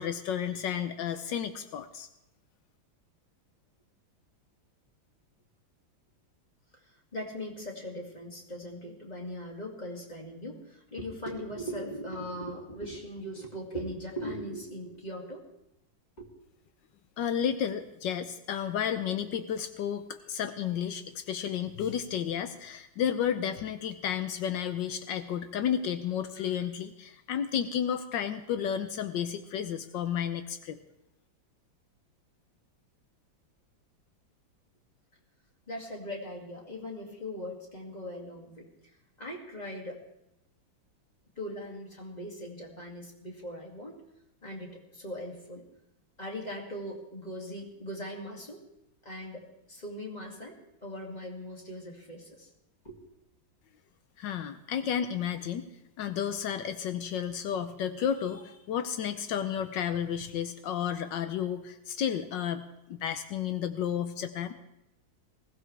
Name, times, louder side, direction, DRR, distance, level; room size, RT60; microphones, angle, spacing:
voice 1, 0.0-2.1 17.2-30.8 54.2-55.7 56.0-64.5, left 8 dB, 75° left, 10 dB, 1.3 m, -32 dB
voice 2, 7.1-15.4 16.2-16.3 35.7-38.7 39.2-40.0 41.4-43.9 44.4-45.6 46.2-48.6 49.0-50.6 50.8-52.5 52.8-53.0, equal, 20° left, -1 dB, 2.3 m, -40 dB
20.5 x 15.5 x 3.3 m, 0.86 s
omnidirectional pair, 2.1 m